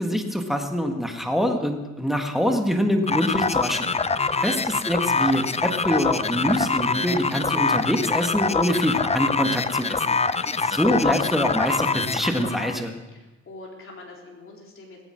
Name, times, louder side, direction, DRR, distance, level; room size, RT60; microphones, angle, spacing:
voice 1, 0.0-3.9 4.4-10.2 10.7-12.9, equal, ahead, 4 dB, 1.6 m, -24 dB
sound 1, 3.1-12.8, left 4 dB, 20° left, 0.7 m, -25 dB
voice 2, 4.1-4.6 10.3-10.7 13.1-15.0, left 2 dB, 45° left, -2 dB, 4.0 m, -45 dB
20.0 x 9.1 x 6.4 m, 1.1 s
cardioid pair, 90°, 30 cm